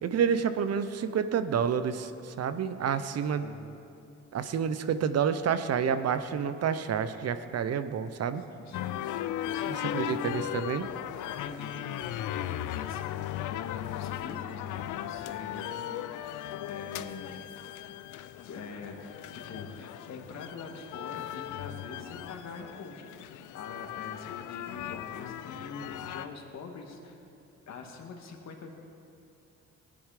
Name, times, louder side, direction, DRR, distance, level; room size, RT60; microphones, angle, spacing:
voice 1, 0.0-3.5 4.3-8.4 9.7-10.9, right 7 dB, 55° right, 11 dB, 0.8 m, -29 dB
voice 2, 8.6-10.1 11.2-13.2 13.5-16.1 16.6-17.4 18.4-19.0 19.3-23.2 23.5-27.2 27.7-28.7, left 4 dB, 60° left, 2 dB, 2.0 m, -44 dB
sound 1, 8.7-26.3, left 12 dB, 80° left, 0.5 m, -37 dB
18.5 x 10.0 x 5.0 m, 2.7 s
cardioid pair, 90°, 30 cm